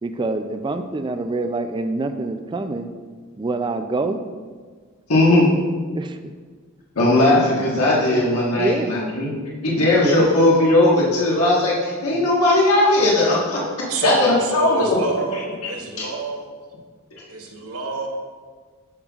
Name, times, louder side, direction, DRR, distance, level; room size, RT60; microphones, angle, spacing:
voice 1, 0.0-2.9 3.4-4.2 5.9-6.2 8.5-9.0 9.3-9.4 10.0-10.2 12.1-12.3, right 2 dB, 20° right, 8 dB, 0.4 m, -26 dB
voice 2, 5.1-5.5 6.9-9.4 9.6-13.6 14.0-15.0 15.3-15.7 16.0-16.1, left 2 dB, 90° left, -5 dB, 1.5 m, -18 dB
voice 3, 13.9-16.5 17.3-18.1, right 3 dB, 80° right, 1 dB, 1.2 m, -27 dB
12.0 x 5.5 x 2.4 m, 1.5 s
head